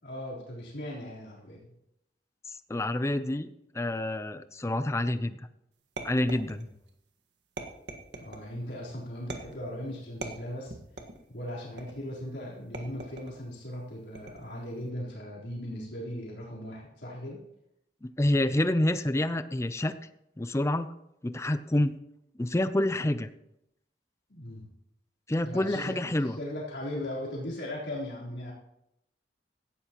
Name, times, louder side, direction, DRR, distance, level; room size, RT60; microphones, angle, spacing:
voice 1, 0.0-1.7 8.1-10.7 11.3-17.4 24.3-24.7 25.4-26.0 26.2-28.5, left 1 dB, 75° left, -5 dB, 3.8 m, -38 dB
voice 2, 2.7-3.5 3.7-5.5 6.0-6.7 18.0-19.9 20.4-20.9 21.2-22.0 22.4-23.3 25.3-26.4, left 1 dB, 15° left, 11 dB, 0.5 m, -28 dB
sound 1, 6.0-6.9 7.6-8.5 9.3-9.7 10.2-11.3 11.8-12.2 12.7-13.4 14.1-14.6, right 2 dB, 85° right, 1.6 m, -41 dB
17.0 x 13.0 x 3.0 m, 0.82 s
head